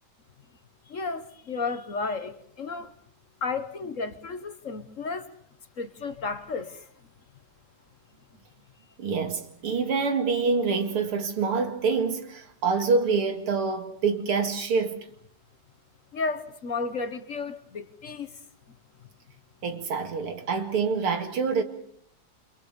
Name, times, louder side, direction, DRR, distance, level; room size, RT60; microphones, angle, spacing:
voice 1, 0.9-2.9 3.4-5.3 5.8-6.9 16.1-18.3, left 4 dB, 45° left, 1.2 m, -33 dB
voice 2, 9.0-15.1 19.6-21.6, right 4 dB, 80° right, 3.1 m, -26 dB
30.0 x 25.5 x 5.2 m
omnidirectional pair, 2.4 m